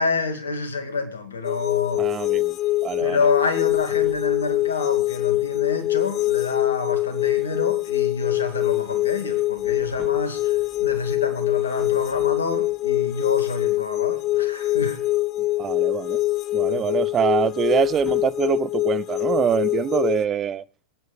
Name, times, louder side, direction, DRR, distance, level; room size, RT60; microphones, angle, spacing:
voice 1, 0.0-2.1 3.0-15.0 16.7-16.9, left 4 dB, 70° left, 2.4 m, -28 dB
sound 1, 1.4-20.2, left 16 dB, 35° left, 0.8 m, -24 dB
voice 2, 2.0-3.3 15.6-16.2 16.5-20.6, right 9 dB, 25° right, 0.7 m, -24 dB
sound 2, 3.6-4.7 9.2-12.8 17.3-18.5, equal, 10° left, 5.3 m, -50 dB
26.0 x 9.3 x 2.4 m
figure-of-eight pair, 90°, 0 cm